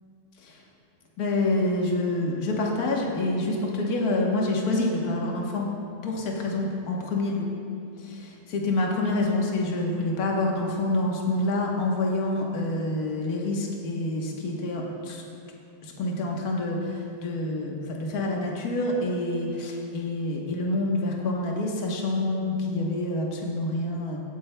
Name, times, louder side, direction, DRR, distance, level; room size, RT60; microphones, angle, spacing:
voice 1, 1.2-5.7 6.0-7.5 8.0-15.2 15.8-24.2, left 2 dB, 60° left, -1 dB, 1.6 m, -27 dB
17.5 x 9.3 x 2.2 m, 2.6 s
omnidirectional pair, 1.9 m